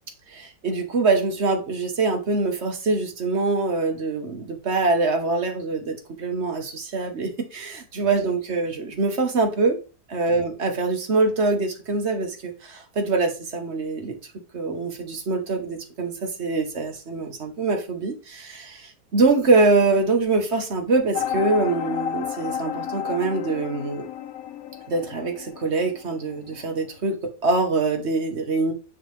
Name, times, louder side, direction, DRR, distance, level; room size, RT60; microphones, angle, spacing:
voice 1, 0.3-9.8 10.1-14.2 14.5-24.1 24.9-28.7, right 3 dB, 45° right, 1.2 m, -24 dB
sound 1, 21.1-26.7, left 9 dB, 70° left, 0.8 m, -32 dB
9.3 x 3.2 x 3.2 m
omnidirectional pair, 1.9 m